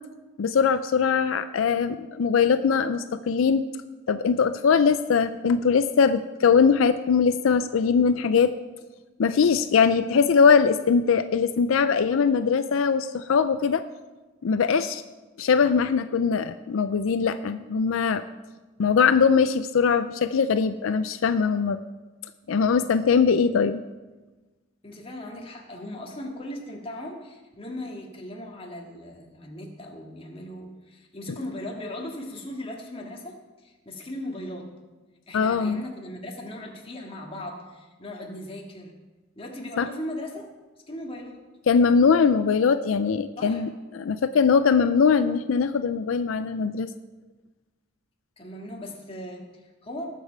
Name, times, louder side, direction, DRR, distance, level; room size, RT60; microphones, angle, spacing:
voice 1, 0.4-3.6 4.1-8.5 9.2-13.8 14.4-15.0 15.4-18.2 18.8-21.8 22.5-23.8 35.3-35.8 39.8-39.9 41.7-46.9, left 6 dB, 85° left, 11 dB, 0.4 m, -21 dB
voice 2, 24.8-34.7 35.3-38.9 39.3-40.4 40.9-41.4 43.4-43.6 48.4-50.2, left 1 dB, 30° left, 0 dB, 1.9 m, -38 dB
19.0 x 6.8 x 4.6 m, 1.2 s
head